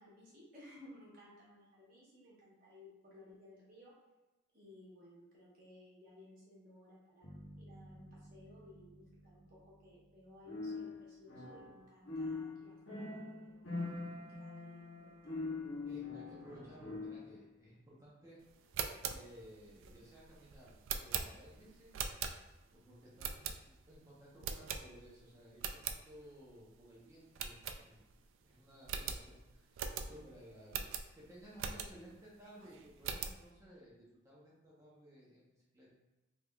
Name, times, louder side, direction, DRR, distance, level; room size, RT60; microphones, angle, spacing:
voice 1, 0.0-3.9 4.5-13.7 14.3-15.6 31.7-31.9, left 1 dB, 45° right, -7 dB, 1.3 m, -59 dB
sound 1, 7.2-11.2, right 1 dB, 30° left, 0.6 m, -57 dB
sound 2, 10.4-11.8 12.0-17.3, left 3 dB, 80° left, 0.9 m, -43 dB
voice 2, 15.8-18.4 19.1-21.9 22.7-28.0 28.4-31.0 31.3-35.5 35.7-35.9, equal, 15° right, -6 dB, 0.9 m, -57 dB
sound 3, 18.6-22.7 23.2-23.9 24.4-25.2 25.5-26.0 26.4-26.5 26.8-26.9 27.3-28.3 28.5-28.6 28.8-32.2 32.6-33.4, right 7 dB, 80° right, 0.3 m, -41 dB
3.5 x 3.3 x 2.3 m, 1.1 s
head